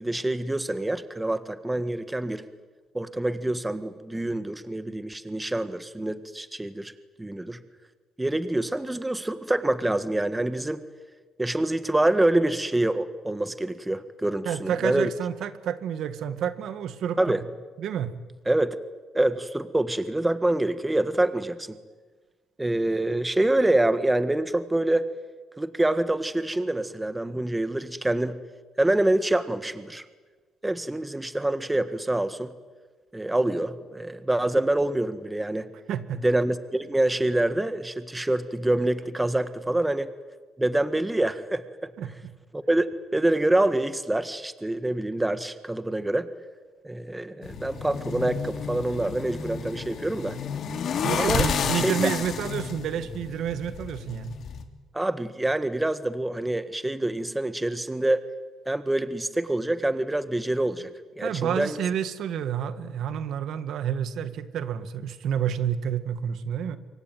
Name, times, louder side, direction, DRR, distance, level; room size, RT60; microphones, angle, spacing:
voice 1, 0.0-2.4 2.9-6.9 7.2-7.6 8.2-10.8 11.4-15.1 17.2-17.4 18.5-18.8 19.1-21.8 22.6-25.1 25.6-28.4 28.8-30.0 30.6-32.5 33.1-35.7 36.2-40.1 40.6-41.9 42.5-46.3 46.8-50.4 51.2-51.4 51.8-51.9 54.9-58.2 58.7-60.9 61.2-61.8, right 1 dB, 10° right, 12 dB, 1.6 m, -26 dB
voice 2, 14.5-17.2 17.8-18.1 35.9-36.2 42.0-42.3 51.0-54.4 61.2-66.8, right 9 dB, 75° right, 12 dB, 1.9 m, -29 dB
sound 1, 47.4-54.6, left 7 dB, 65° left, 2.9 m, -31 dB
25.5 x 23.5 x 9.4 m, 1.4 s
cardioid pair, 90°, 0 cm